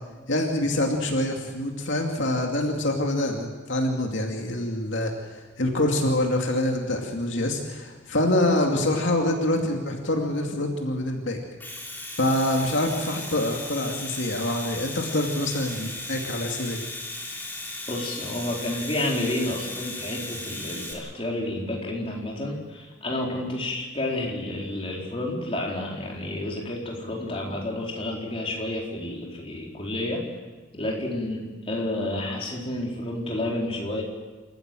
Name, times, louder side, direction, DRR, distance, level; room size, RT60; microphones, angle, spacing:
voice 1, 0.3-11.4 12.2-16.8, left 1 dB, 70° left, 1 dB, 2.4 m, -25 dB
Domestic sounds home sounds, 11.4-20.9, left 2 dB, 10° left, 3.4 m, -36 dB
voice 2, 17.9-30.2 30.7-34.0, left 1 dB, 30° left, -2 dB, 4.3 m, -30 dB
28.5 x 14.5 x 7.7 m, 1.2 s
head